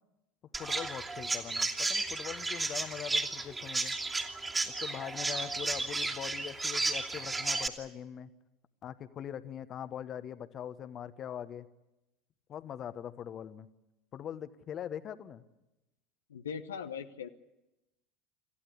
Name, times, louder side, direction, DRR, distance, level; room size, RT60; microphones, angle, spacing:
Chirp tweet, 0.5-7.7, right 3 dB, 20° right, 2.7 m, -33 dB
voice 1, 0.6-4.0 4.6-8.3 8.8-11.7 12.5-13.7 14.1-15.4, left 9 dB, 40° left, 12 dB, 1.3 m, -42 dB
voice 2, 16.3-17.3, left 7 dB, 80° left, 7 dB, 1.0 m, -40 dB
27.5 x 14.5 x 9.8 m, 0.95 s
hypercardioid pair, 75°, 0 cm